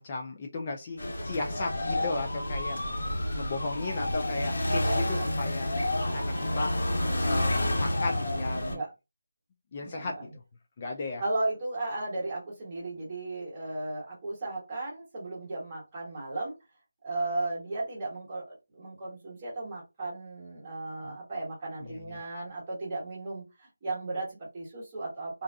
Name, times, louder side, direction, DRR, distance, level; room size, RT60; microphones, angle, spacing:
voice 1, 0.0-2.8 3.4-5.7 6.1-6.7 7.2-8.8 9.7-10.2 10.8-11.2 21.8-22.2, left 3 dB, 25° left, 0.3 m, -35 dB
sound 1, 1.0-8.7, left 1 dB, 60° left, 1.2 m, -29 dB
voice 2, 4.8-5.3 8.7-8.9 9.8-10.3 11.2-16.5 17.0-18.4 18.7-25.4, right 2 dB, 20° right, 1.2 m, -35 dB
2.5 x 2.3 x 2.2 m
figure-of-eight pair, 170°, 0 cm